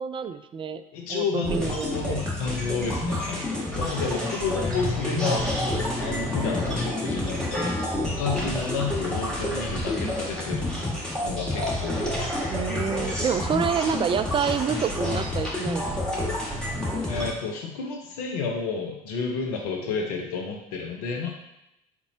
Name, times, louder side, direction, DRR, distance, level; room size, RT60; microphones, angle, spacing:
voice 1, 0.0-0.8 1.1-2.2 12.5-16.3, right 7 dB, 25° right, 11 dB, 0.3 m, -28 dB
voice 2, 0.9-5.4 6.0-10.7 11.2-12.2 17.1-21.3, left 5 dB, 80° left, 1 dB, 0.8 m, -31 dB
sound 1, 1.4-17.3, left 1 dB, 5° left, 1.7 m, -29 dB
sound 2, 4.6-8.2, left 1 dB, 40° left, 1.1 m, -36 dB
4.5 x 4.1 x 2.7 m, 0.87 s
hypercardioid pair, 65°, 20 cm